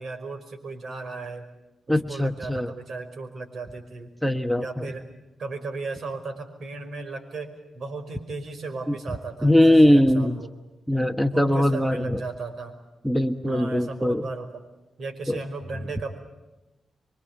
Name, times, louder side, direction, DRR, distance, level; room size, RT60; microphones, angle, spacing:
voice 1, 0.0-1.5 1.9-4.1 4.5-5.0 5.4-10.5 11.3-12.8 13.5-14.6 15.0-16.2, right 3 dB, 60° right, 6 dB, 5.3 m, -35 dB
voice 2, 1.9-2.7 4.2-4.9 8.9-9.0 9.4-10.4 10.9-12.2 13.0-14.2 15.3-15.4, left 1 dB, 5° right, 9 dB, 1.2 m, -21 dB
26.0 x 24.0 x 8.1 m, 1.0 s
cardioid pair, 100°, 0 cm